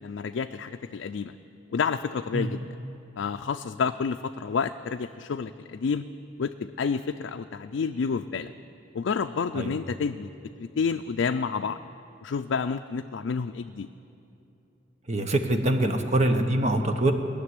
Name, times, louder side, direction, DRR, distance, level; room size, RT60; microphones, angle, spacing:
voice 1, 0.0-1.4 1.7-2.7 3.2-6.1 6.4-8.5 8.9-10.3 10.6-11.8 12.2-13.9, left 5 dB, 70° left, 6 dB, 0.4 m, -29 dB
voice 2, 15.1-17.1, right 1 dB, 35° right, 6 dB, 0.9 m, -24 dB
19.5 x 6.8 x 9.6 m, 2.8 s
head